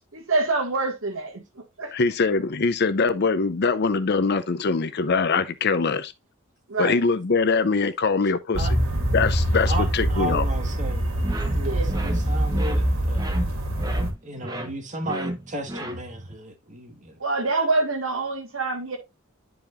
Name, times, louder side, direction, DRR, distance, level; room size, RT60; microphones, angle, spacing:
voice 1, 0.1-1.9 6.7-7.0 11.6-11.9 17.2-19.0, right 3 dB, 70° right, 1.8 m, -26 dB
voice 2, 1.9-6.1 6.8-8.7 9.1-10.4, left 4 dB, 55° left, 0.6 m, -23 dB
sound 1, 8.5-14.1, right 1 dB, 90° right, 2.2 m, -24 dB
voice 3, 9.6-11.1 11.5-13.2 14.2-17.2, right 1 dB, 35° right, 1.7 m, -34 dB
sound 2, 11.2-16.4, right 1 dB, 20° right, 1.0 m, -34 dB
10.5 x 5.0 x 2.5 m
head